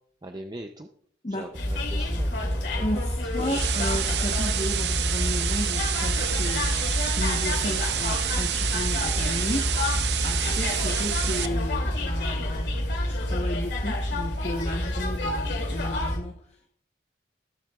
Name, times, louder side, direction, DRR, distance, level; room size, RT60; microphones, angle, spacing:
voice 1, 0.2-0.9 1.3-2.8 3.4-3.6, right 1 dB, 25° right, 5 dB, 0.5 m, -41 dB
sound 1, 1.5-16.2, left 1 dB, 80° left, 2.6 m, -28 dB
voice 2, 2.8-12.7 13.0-16.7, left 1 dB, 35° left, 2 dB, 1.0 m, -34 dB
sound 2, 3.4-11.5, right 10 dB, 70° right, 0.7 m, -29 dB
21.0 x 7.6 x 2.3 m, 0.62 s
head